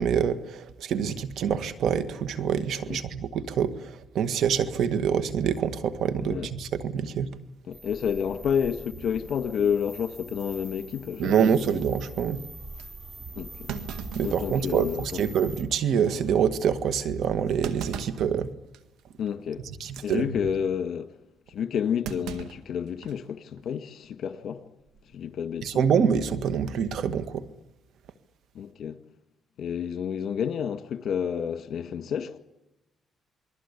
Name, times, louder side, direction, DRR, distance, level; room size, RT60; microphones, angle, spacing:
voice 1, 0.0-7.3 11.2-12.4 14.1-18.5 19.6-20.3 25.6-27.5, right 7 dB, 75° right, 1.8 m, -26 dB
voice 2, 7.7-11.3 13.3-13.7 14.2-15.0 19.2-19.6 20.0-21.1 21.5-24.6 25.1-25.8 28.5-29.0 29.6-32.4, left 8 dB, 65° left, 1.8 m, -30 dB
sound 1, 7.7-15.6, right 2 dB, 45° right, 3.8 m, -43 dB
Thump thud, 12.8-12.9 13.7-15.0 15.4-15.5 16.0-16.2 17.6-18.3 18.7-19.0 19.8-20.1 22.0-23.3 23.6-23.7 24.8-25.1, right 7 dB, 90° right, 1.8 m, -39 dB
28.5 x 21.5 x 8.4 m
cardioid pair, 90°, 0 cm